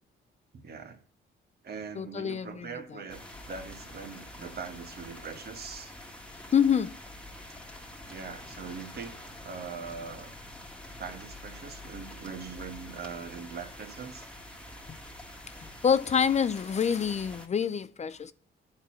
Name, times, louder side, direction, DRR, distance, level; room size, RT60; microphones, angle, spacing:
voice 1, 0.5-1.0 1.6-5.9 8.1-9.2 9.4-10.3 11.0-14.3, right 5 dB, 55° right, 1.5 m, -41 dB
voice 2, 2.0-3.0 6.5-7.0 14.9-15.0 15.6-18.3, left 7 dB, 35° left, 0.5 m, -27 dB
sound 1, 3.1-17.5, left 1 dB, 5° left, 1.6 m, -46 dB
9.3 x 4.5 x 7.3 m
cardioid pair, 90°, 20 cm